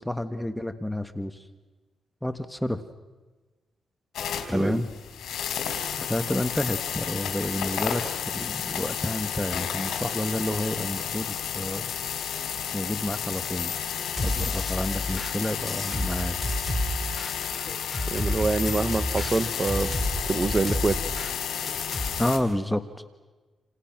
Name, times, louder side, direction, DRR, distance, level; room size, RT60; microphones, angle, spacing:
voice 1, 0.0-1.5 2.2-2.8 4.5-4.9 6.0-11.9 12.7-13.7 14.2-16.4 22.2-22.8, left 1 dB, 5° left, 9 dB, 1.5 m, -30 dB
sound 1, 4.1-22.4, left 8 dB, 80° left, 4.2 m, -32 dB
sound 2, 6.4-7.2 7.5-8.3 8.7-9.5 9.9-20.4, right 4 dB, 75° right, 7.7 m, -52 dB
sound 3, 14.2-22.1, left 1 dB, 25° left, 4.3 m, -31 dB
voice 2, 18.1-19.9 20.3-21.0, right 3 dB, 30° right, 12 dB, 1.8 m, -25 dB
29.0 x 28.5 x 6.1 m, 1.3 s
cardioid pair, 75°, 0 cm